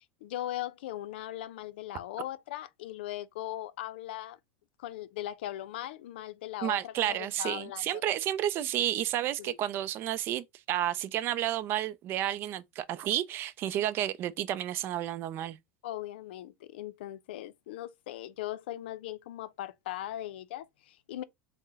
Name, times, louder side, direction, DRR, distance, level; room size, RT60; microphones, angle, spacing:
voice 1, 0.0-4.4 4.8-7.9 9.4-9.6 15.8-21.2, left 13 dB, 85° left, 0.4 m, -39 dB
voice 2, 6.6-15.6, right 12 dB, 45° right, 0.4 m, -31 dB
3.8 x 2.1 x 3.9 m
supercardioid pair, 130°, 5 cm